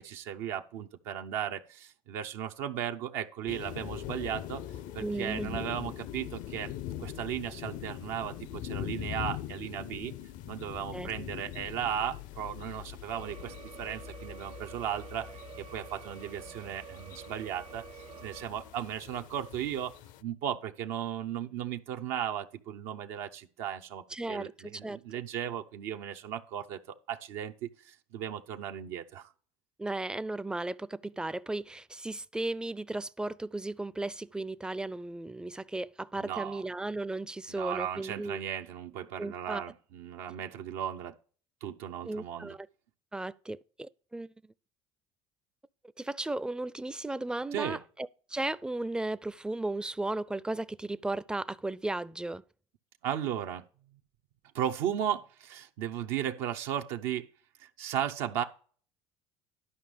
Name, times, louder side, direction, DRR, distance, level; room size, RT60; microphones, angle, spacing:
voice 1, 0.0-4.6 4.9-6.7 7.0-10.1 10.5-17.8 18.2-19.9 20.2-29.3 36.2-36.6 37.5-41.1 41.6-42.6 47.5-47.8 53.0-53.6 54.5-57.3 57.6-58.4, right 10 dB, 75° right, 0.7 m, -36 dB
sound 1, 3.5-20.2, left 12 dB, 65° left, 0.6 m, -42 dB
voice 2, 5.0-5.6 10.9-11.1 24.1-25.0 29.8-38.4 39.2-39.6 42.0-42.7 43.1-44.3 46.0-52.4, right 2 dB, 5° right, 0.4 m, -35 dB
sound 2, 13.1-18.5, right 9 dB, 40° right, 0.7 m, -49 dB
11.5 x 5.3 x 5.0 m
supercardioid pair, 85°, 14 cm